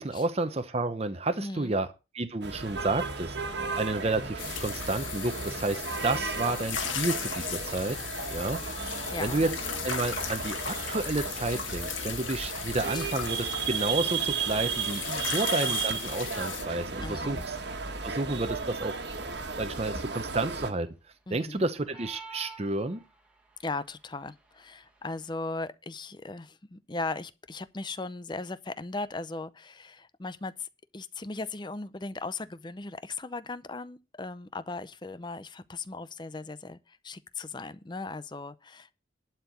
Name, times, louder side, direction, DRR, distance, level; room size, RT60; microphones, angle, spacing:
voice 1, 0.0-1.9 2.1-8.0 8.3-8.9 9.2-9.5 9.8-17.6 18.0-19.0 19.6-20.9 21.3-23.0, right 2 dB, 30° right, 0.8 m, -31 dB
voice 2, 1.4-1.8 9.1-9.4 12.9-13.1 15.1-15.4 17.0-17.4 21.3-21.7 23.6-38.9, left 3 dB, 25° left, 0.6 m, -38 dB
sound 1, 2.4-20.7, right 5 dB, 60° right, 1.5 m, -34 dB
sound 2, 4.4-16.6, left 8 dB, 90° left, 1.8 m, -37 dB
sound 3, 21.9-23.4, right 4 dB, 5° right, 1.8 m, -46 dB
11.5 x 4.5 x 8.3 m
head